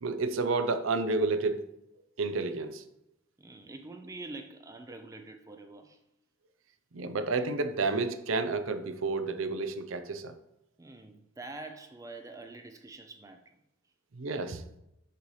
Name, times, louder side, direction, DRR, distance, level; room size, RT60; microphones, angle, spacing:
voice 1, 0.0-1.7 2.2-2.8 6.9-10.3 14.1-14.6, right 3 dB, 75° right, 0.6 m, -30 dB
voice 2, 3.4-6.0 10.8-13.6, right 2 dB, 15° right, 0.4 m, -45 dB
6.6 x 5.5 x 3.2 m
head